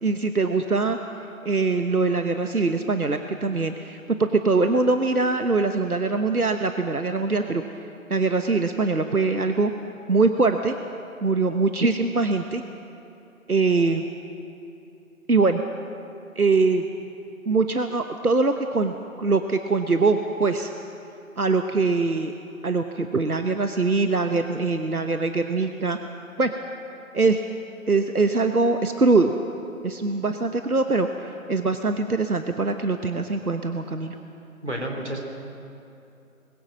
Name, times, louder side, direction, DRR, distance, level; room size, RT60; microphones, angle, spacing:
voice 1, 0.0-1.0 1.4-7.6 8.1-9.7 10.1-10.8 11.2-12.6 13.5-14.0 15.3-15.6 16.4-16.9 17.5-20.7 21.4-22.3 22.6-26.0 26.4-26.5 27.1-27.4 27.9-29.3 29.8-31.1 31.5-34.2, right 3 dB, 85° right, 7 dB, 1.2 m, -22 dB
voice 2, 34.6-35.2, right 1 dB, 50° right, 1 dB, 3.2 m, -30 dB
21.5 x 16.0 x 7.5 m, 2.7 s
figure-of-eight pair, 175°, 43 cm